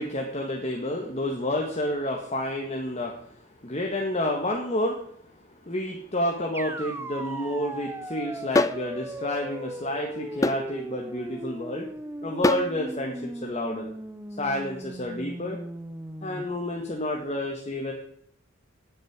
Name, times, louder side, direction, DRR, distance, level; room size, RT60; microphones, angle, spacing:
voice 1, 0.0-5.0 5.6-11.9 12.2-13.9 14.4-15.6 16.2-17.9, left 1 dB, 35° left, 0 dB, 1.8 m, -30 dB
sound 1, 6.5-16.4, right 1 dB, 10° right, 0.7 m, -38 dB
sound 2, 8.5-8.8 10.4-10.6 12.4-12.7, left 2 dB, 15° left, 0.4 m, -22 dB
9.8 x 9.2 x 8.8 m, 0.67 s
head